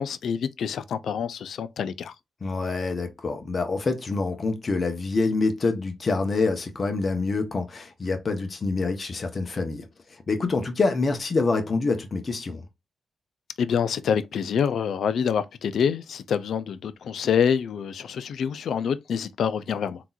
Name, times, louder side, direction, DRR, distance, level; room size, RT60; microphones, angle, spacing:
voice 1, 0.0-2.1 13.6-20.0, left 7 dB, 75° left, 0.4 m, -26 dB
voice 2, 2.4-12.6, left 3 dB, 50° left, 1.0 m, -26 dB
3.6 x 2.9 x 2.4 m
supercardioid pair, 45°, 0 cm